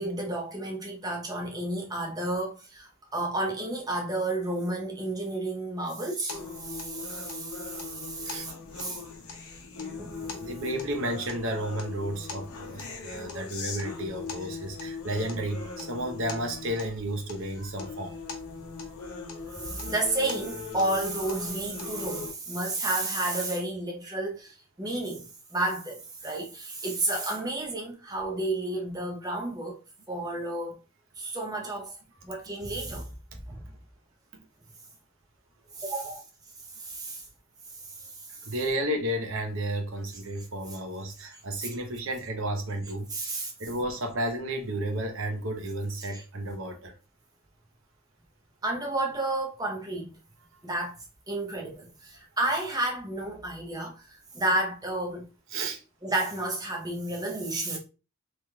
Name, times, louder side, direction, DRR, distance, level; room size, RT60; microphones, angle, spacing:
voice 1, 0.0-9.0 10.0-10.5 19.6-29.8 30.1-30.7 31.2-32.0 32.2-33.1 33.5-33.6 35.8-36.2 36.8-37.2 38.0-38.4 41.6-41.7 43.1-43.5 46.1-46.2 48.6-50.1 50.6-51.0 51.3-55.3 56.0-57.8, right 2 dB, 15° right, 0.7 m, -31 dB
sound 1, 6.3-22.3, left 4 dB, 90° left, 0.7 m, -40 dB
voice 2, 10.4-18.2 38.4-43.1 43.6-46.9 55.5-55.8, right 1 dB, 60° right, 0.7 m, -32 dB
3.4 x 3.0 x 2.2 m
head